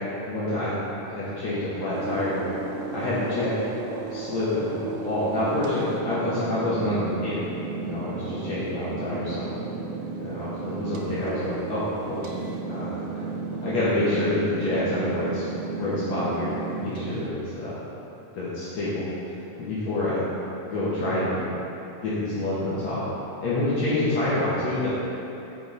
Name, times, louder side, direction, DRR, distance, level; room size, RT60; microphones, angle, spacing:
voice 1, 0.2-0.7 1.1-2.4 2.9-3.5 4.1-4.7 5.0-7.4 7.8-9.5 10.2-12.3 12.7-13.2 13.6-15.5 15.8-17.7 18.3-19.0 19.6-20.2 20.7-21.4 22.0-23.0 23.4-24.9, left 1 dB, 65° left, -10 dB, 2.1 m, -27 dB
sound 1, 1.9-17.3, right 4 dB, 80° right, 1.8 m, -34 dB
8.5 x 4.9 x 3.9 m, 3.0 s
omnidirectional pair, 4.0 m